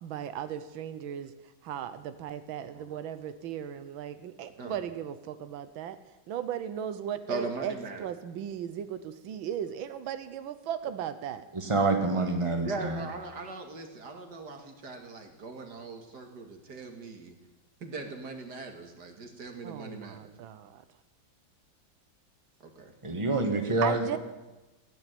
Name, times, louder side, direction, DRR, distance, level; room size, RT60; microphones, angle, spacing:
voice 1, 0.0-1.3 1.6-6.0 6.3-7.7 8.0-11.5 19.6-20.8 23.8-24.2, right 9 dB, 85° right, 11 dB, 1.6 m, -36 dB
voice 2, 7.3-8.1 12.6-17.3 17.8-20.3 22.6-22.9, right 3 dB, 55° right, 5 dB, 2.5 m, -40 dB
voice 3, 11.5-13.0 23.0-24.2, right 3 dB, 15° right, 4 dB, 1.8 m, -27 dB
16.5 x 9.1 x 9.2 m, 1.1 s
omnidirectional pair, 2.1 m